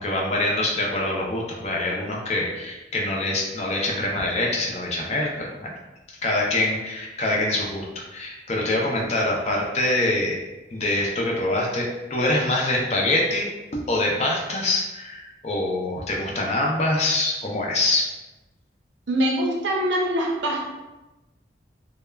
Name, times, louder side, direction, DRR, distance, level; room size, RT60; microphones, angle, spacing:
voice 1, 0.0-5.7 6.2-10.4 10.7-13.5 13.7-18.1, left 2 dB, 35° left, -2 dB, 0.4 m, -25 dB
voice 2, 19.1-20.6, right 1 dB, 85° right, 0 dB, 0.6 m, -23 dB
3.2 x 2.0 x 2.2 m, 1.1 s
head